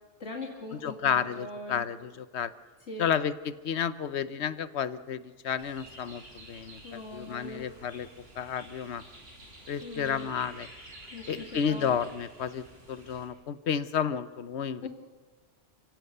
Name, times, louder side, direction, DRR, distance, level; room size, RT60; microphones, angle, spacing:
voice 1, 0.2-1.9 2.9-3.1 6.8-7.7 9.8-10.3 11.1-12.0 14.8-14.9, left 2 dB, 90° left, 0 dB, 2.7 m, -41 dB
voice 2, 0.7-2.5 3.0-8.1 8.4-9.0 9.7-10.7 11.3-14.9, left 8 dB, 70° left, 14 dB, 1.1 m, -31 dB
sound 1, 5.6-13.3, right 1 dB, 60° right, 5.3 m, -50 dB
30.0 x 16.5 x 6.8 m, 1.4 s
omnidirectional pair, 1.2 m